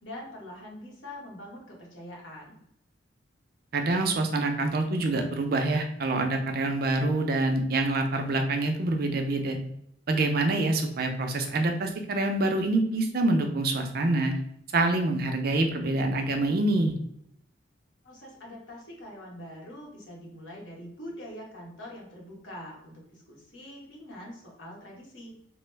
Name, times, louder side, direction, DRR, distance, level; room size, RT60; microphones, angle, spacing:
voice 1, 0.0-2.6 18.0-25.4, left 1 dB, 85° left, -3 dB, 1.2 m, -44 dB
voice 2, 3.7-9.6 10.1-14.3 14.7-16.9, right 2 dB, 50° right, 4 dB, 0.5 m, -26 dB
3.0 x 2.0 x 3.2 m, 0.74 s
head